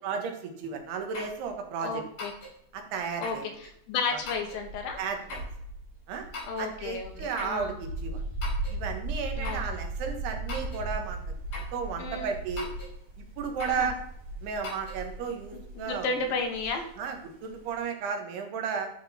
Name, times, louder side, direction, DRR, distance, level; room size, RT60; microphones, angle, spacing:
voice 1, 0.0-2.0 2.7-3.5 4.1-4.2 5.0-5.5 6.1-6.3 6.6-8.2 8.7-11.2 11.5-12.7 13.2-14.0 14.4-16.1 17.0-18.9, right 6 dB, 90° right, 4 dB, 3.6 m, -34 dB
sound 1, 1.1-1.4 2.2-2.6 3.2-3.5 4.3-4.6 5.3-5.5 6.3-6.7 7.4-7.6 8.4-8.8 9.4-9.7 10.5-10.9 11.5-11.8 12.6-12.9 13.6-13.8 14.6-15.0, left 3 dB, 45° left, 4.6 m, -40 dB
sound 2, 1.4-1.5 3.0-3.1 3.6-3.7 4.2-17.8, right 2 dB, 40° right, 4.4 m, -38 dB
voice 2, 1.8-2.3 3.2-3.4 3.9-5.0 6.5-7.7 9.4-9.6 12.0-12.3 13.8-13.9 15.5-16.8, left 4 dB, 70° left, 4 dB, 2.9 m, -32 dB
12.5 x 6.3 x 4.3 m, 0.72 s
omnidirectional pair, 4.5 m